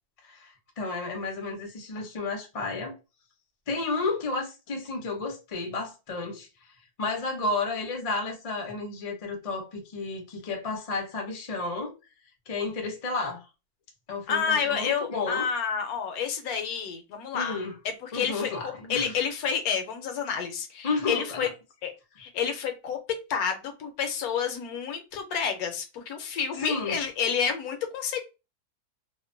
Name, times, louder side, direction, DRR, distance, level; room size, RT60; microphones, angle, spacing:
voice 1, 0.2-3.0 3.7-6.5 7.0-11.9 12.5-13.4 14.1-15.5 17.3-17.7 18.1-19.2 20.8-21.5 26.6-27.0, left 3 dB, 55° left, 0.4 m, -32 dB
voice 2, 14.3-17.6 18.0-21.5 21.8-21.9 22.2-23.0 23.3-28.2, left 7 dB, 75° left, 1.1 m, -29 dB
2.8 x 2.1 x 2.5 m
omnidirectional pair, 1.6 m